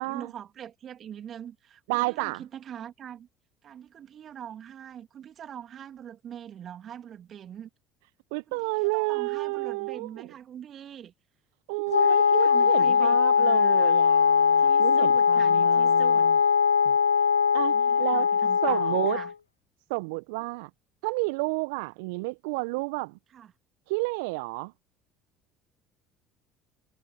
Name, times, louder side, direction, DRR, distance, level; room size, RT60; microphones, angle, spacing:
voice 1, 0.0-3.3 3.6-7.7 8.5-11.1 12.0-14.0 14.6-16.3 17.7-19.3 23.3-23.5, right 9 dB, 45° right, 3.0 m, -43 dB
voice 2, 1.9-2.4 8.3-10.3 11.7-16.3 16.8-16.9 17.5-18.3 18.6-19.2 19.9-20.7 21.0-23.2 23.9-24.7, right 27 dB, 65° right, 1.0 m, -31 dB
Wind instrument woodwind instrument, 11.9-19.3, left 6 dB, 85° left, 0.3 m, -21 dB
figure-of-eight pair, 60°, 0 cm